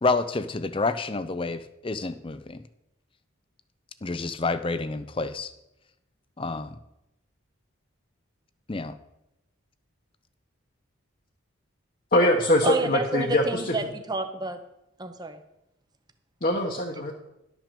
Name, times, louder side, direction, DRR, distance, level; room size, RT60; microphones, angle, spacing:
voice 1, 0.0-2.6 4.0-5.5 6.4-6.8 8.7-8.9, left 3 dB, 25° left, 12 dB, 0.5 m, -28 dB
voice 2, 12.1-13.7 16.4-17.1, left 1 dB, 40° left, 0 dB, 1.1 m, -23 dB
voice 3, 12.6-14.6 15.0-15.4, right 3 dB, 20° right, 8 dB, 0.7 m, -29 dB
12.0 x 6.1 x 6.8 m, 0.89 s
head